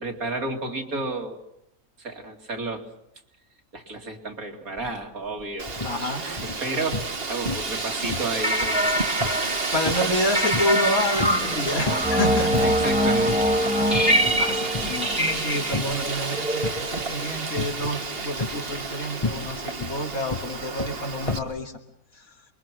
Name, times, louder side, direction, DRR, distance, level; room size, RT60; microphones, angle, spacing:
voice 1, 0.0-1.4 2.0-2.9 3.7-5.7 6.2-9.4 12.6-13.7, right 2 dB, 70° right, 2 dB, 3.2 m, -32 dB
sound 1, 4.8-5.0 5.3-6.0 6.4-7.2 7.5-7.8 8.1-10.9 11.2-12.2 12.5-13.0 13.3-13.5 13.9-14.5 14.7-16.1 16.6-17.0 17.6-18.0 18.4-21.6, left 3 dB, 25° left, 1.3 m, -32 dB
Wind, 5.6-21.4, right 4 dB, 40° right, 1.7 m, -31 dB
voice 2, 5.8-6.3 9.7-12.9 13.8-21.8 22.1-22.2, left 1 dB, 70° left, 2 dB, 3.1 m, -29 dB
sound 2, 8.4-17.3, equal, 5° right, 1.9 m, -24 dB
28.5 x 23.0 x 6.2 m, 0.79 s
omnidirectional pair, 1.5 m